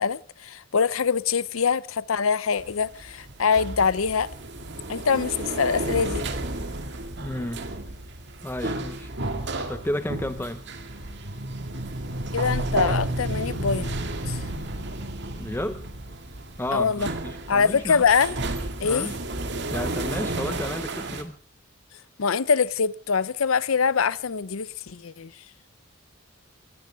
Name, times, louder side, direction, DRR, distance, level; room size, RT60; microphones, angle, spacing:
voice 1, 0.0-4.3 4.9-6.3 12.3-14.0 14.2-14.4 16.7-17.1 17.5-18.4 18.8-19.1 22.2-25.3, left 6 dB, 80° left, 0.6 m, -24 dB
sound 1, 2.6-21.2, right 2 dB, 55° right, 2.2 m, -32 dB
voice 2, 7.2-7.7 8.4-9.1 9.7-10.6 15.4-15.8 16.6-18.0 18.8-19.2 19.7-21.4, left 1 dB, 10° left, 0.7 m, -32 dB
21.5 x 17.0 x 3.6 m
head